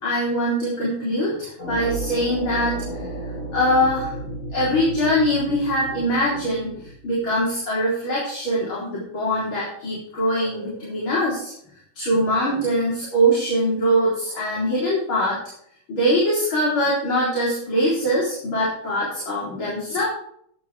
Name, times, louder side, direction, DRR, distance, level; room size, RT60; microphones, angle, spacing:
voice 1, 0.0-3.1 3.4-11.5 12.0-15.4 15.9-20.0, equal, 75° left, -7 dB, 4.7 m, -23 dB
sound 1, 1.6-7.4, right 2 dB, 35° left, 4.9 m, -33 dB
14.5 x 10.5 x 3.5 m, 0.68 s
omnidirectional pair, 2.2 m